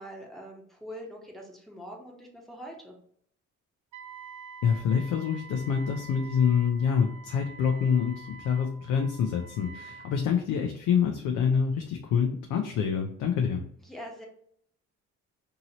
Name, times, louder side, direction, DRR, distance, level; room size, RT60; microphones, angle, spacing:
voice 1, 0.0-2.9 13.8-14.3, equal, ahead, -1 dB, 1.0 m, -43 dB
Wind instrument woodwind instrument, 3.9-10.2, right 4 dB, 65° right, 0.6 m, -47 dB
voice 2, 4.6-13.6, left 7 dB, 80° left, 2 dB, 0.5 m, -26 dB
2.8 x 2.7 x 2.9 m, 0.67 s
cardioid pair, 90°, 30 cm